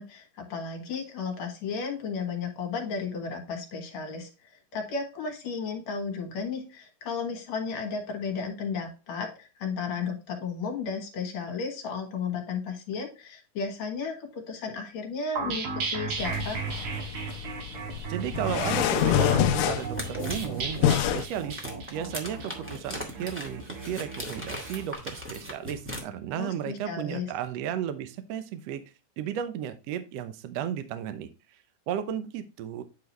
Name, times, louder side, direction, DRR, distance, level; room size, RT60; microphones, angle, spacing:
voice 1, 0.0-16.6 26.4-27.3, left 5 dB, 55° left, 3 dB, 2.6 m, -34 dB
sound 1, 15.4-24.8, right 5 dB, 65° right, 3.0 m, -35 dB
sound 2, 16.2-21.2, left 10 dB, 85° left, 1.7 m, -27 dB
voice 2, 18.1-21.6 21.9-28.8 29.2-31.3 31.9-32.8, right 9 dB, 85° right, 10 dB, 1.4 m, -34 dB
sound 3, 18.7-26.0, equal, 10° right, 0.6 m, -40 dB
9.7 x 4.8 x 3.1 m, 0.31 s
omnidirectional pair, 4.1 m